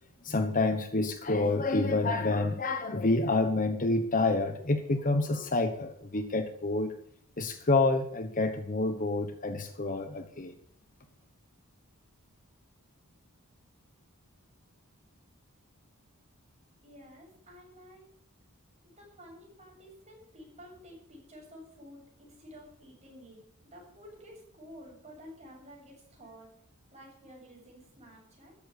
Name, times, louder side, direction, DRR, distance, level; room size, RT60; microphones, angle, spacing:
voice 1, 0.2-6.9 7.4-10.5, left 2 dB, 35° left, 7 dB, 1.1 m, -28 dB
voice 2, 16.8-18.1 18.8-26.5 26.8-28.5, equal, 30° right, -1 dB, 7.1 m, -51 dB
13.5 x 8.7 x 8.3 m, 0.68 s
head